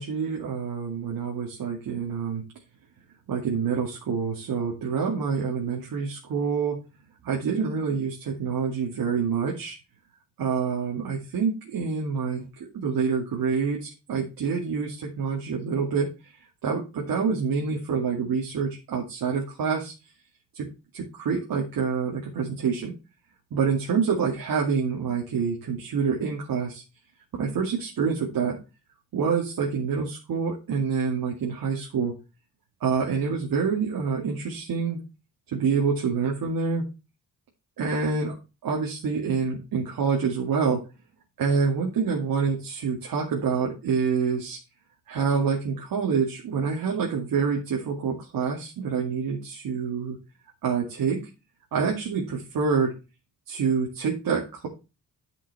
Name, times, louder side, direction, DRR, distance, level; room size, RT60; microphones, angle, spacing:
voice 1, 0.0-2.4 3.3-6.8 7.2-9.8 10.4-16.1 16.6-19.9 20.5-20.7 20.9-22.9 23.5-26.8 27.4-28.6 29.1-32.1 32.8-35.0 35.5-36.8 37.8-38.3 38.6-40.8 41.4-44.6 45.1-50.2 50.6-51.2 51.7-52.9 53.5-54.7, right 5 dB, 90° right, -1 dB, 2.6 m, -27 dB
10.0 x 6.1 x 4.3 m, 0.28 s
cardioid pair, 105°, 34 cm